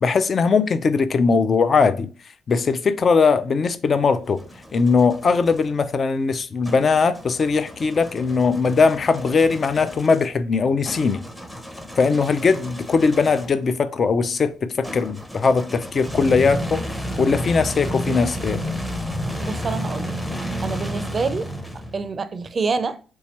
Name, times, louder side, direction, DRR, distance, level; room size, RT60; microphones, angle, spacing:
voice 1, 0.0-2.1 2.5-4.4 4.7-11.2 12.0-16.8 17.2-18.6, left 4 dB, 45° left, 0.4 m, -20 dB
sound 1, 4.0-5.7 6.6-13.6 14.8-22.1, equal, 5° left, 0.7 m, -32 dB
voice 2, 19.4-20.2 20.6-21.5 21.9-23.0, right 4 dB, 40° right, 0.4 m, -26 dB
3.5 x 3.1 x 2.9 m
cardioid pair, 90°, 0 cm